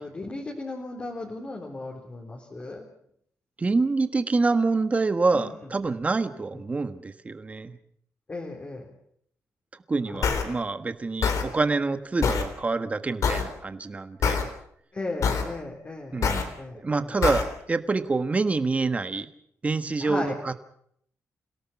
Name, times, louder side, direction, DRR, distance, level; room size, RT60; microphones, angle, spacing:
voice 1, 0.0-2.8 5.3-5.6 6.5-6.6 8.3-8.9 10.1-10.4 14.9-17.1 20.0-20.4, left 2 dB, 30° left, -1 dB, 3.6 m, -36 dB
voice 2, 3.6-7.8 9.9-14.5 16.1-16.4 16.8-19.3 19.6-20.5, right 3 dB, 25° right, 10 dB, 1.4 m, -26 dB
sound 1, 10.2-10.4 11.2-11.4 12.2-12.4 13.2-13.4 14.2-14.4 15.2-15.4 16.2-16.4 17.2-17.4, left 6 dB, 75° left, 3.9 m, -23 dB
29.0 x 17.5 x 6.0 m, 0.67 s
wide cardioid pair, 135°, 6 cm